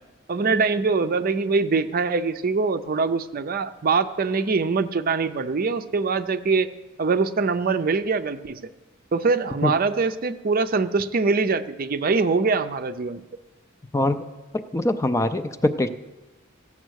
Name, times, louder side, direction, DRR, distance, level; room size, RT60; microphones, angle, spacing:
voice 1, 0.3-6.7 7.0-8.6 9.1-13.2, right 4 dB, 45° right, 10 dB, 0.5 m, -23 dB
voice 2, 13.9-14.3 14.7-15.9, left 1 dB, 15° left, 9 dB, 0.4 m, -23 dB
15.0 x 7.3 x 6.3 m, 1.1 s
head